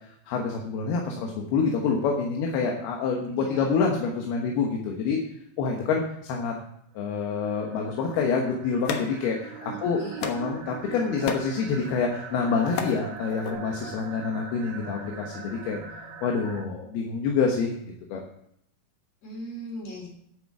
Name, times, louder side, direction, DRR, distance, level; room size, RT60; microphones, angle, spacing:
voice 1, 0.3-5.2 5.6-6.5 6.9-15.8 16.2-18.2, left 5 dB, 85° left, 1 dB, 3.3 m, -27 dB
voice 2, 3.3-3.7 9.6-10.2 19.2-20.1, right 1 dB, 45° left, 1 dB, 4.4 m, -39 dB
sound 1, 7.0-16.7, right 6 dB, 80° right, 1.5 m, -42 dB
sound 2, 8.1-9.7 10.2-10.6 11.0-11.6 12.3-13.0 13.3-13.5, left 7 dB, 65° left, 2.0 m, -33 dB
11.0 x 8.5 x 7.3 m, 0.72 s
omnidirectional pair, 4.4 m